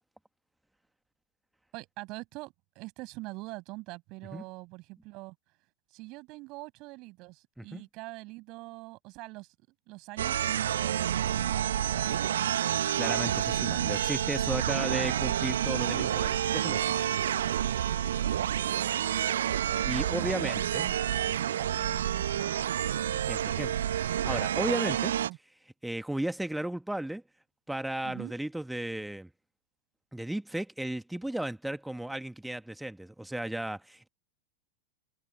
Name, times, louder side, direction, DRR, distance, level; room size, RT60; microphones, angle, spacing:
voice 1, 1.7-5.3 5.9-9.5 9.9-12.5 14.8-15.4 19.9-22.8 24.5-25.4 28.0-28.4, right 23 dB, 40° right, 6.4 m, -44 dB
sound 1, 10.2-25.3, right 10 dB, 60° right, 1.3 m, -29 dB
voice 2, 13.0-17.1 19.8-20.9 23.1-25.1 25.8-27.2 27.7-29.3 30.1-34.1, right 1 dB, 5° right, 2.0 m, -35 dB
figure-of-eight pair, 90°, 0 cm